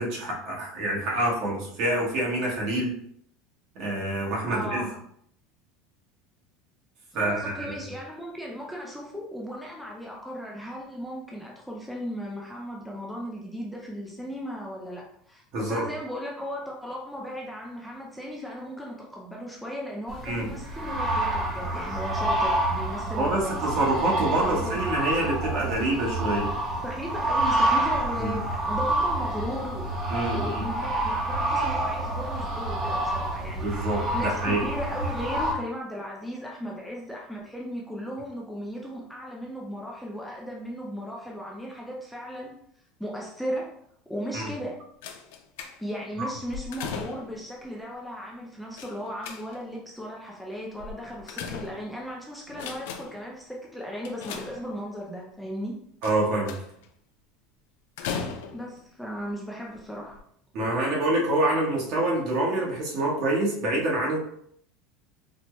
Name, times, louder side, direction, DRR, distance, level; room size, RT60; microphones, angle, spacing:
voice 1, 0.0-2.9 3.7-4.9 7.1-7.8 15.5-15.9 20.2-20.5 23.1-26.5 28.2-28.4 30.1-30.6 33.6-34.6 44.3-44.5 46.2-46.3 56.0-56.5 60.5-64.2, right 1 dB, 55° right, -2 dB, 1.1 m, -26 dB
voice 2, 4.5-5.0 7.1-23.7 24.4-24.9 26.8-29.9 30.3-42.5 43.0-43.7 44.1-44.8 45.8-55.8 58.5-60.2, equal, ahead, -3 dB, 0.5 m, -36 dB
sound 1, 20.1-35.5, right 1 dB, 20° right, 0.8 m, -28 dB
sound 2, 45.0-46.1 46.5-47.5 48.8-49.8 50.8-52.1 52.5-53.3 54.0-55.0 56.0-56.8 58.0-58.8 59.6-59.8 60.1-60.2, left 6 dB, 80° left, 0.4 m, -37 dB
4.2 x 2.1 x 3.0 m, 0.68 s
supercardioid pair, 150°, 0 cm